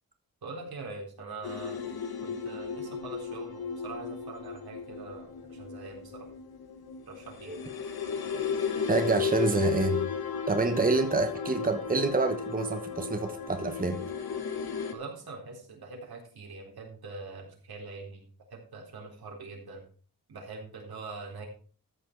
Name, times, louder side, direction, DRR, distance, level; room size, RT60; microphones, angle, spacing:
voice 1, 0.4-1.8 2.2-6.3 7.1-7.6 14.9-18.2 18.5-19.8 20.3-21.5, right 3 dB, 90° right, 4.0 m, -43 dB
sound 1, 1.4-14.9, left 6 dB, 85° left, 1.7 m, -35 dB
voice 2, 8.9-10.1 10.5-14.0, right 3 dB, 25° right, 1.2 m, -27 dB
14.0 x 7.0 x 4.6 m
wide cardioid pair, 115°, 36 cm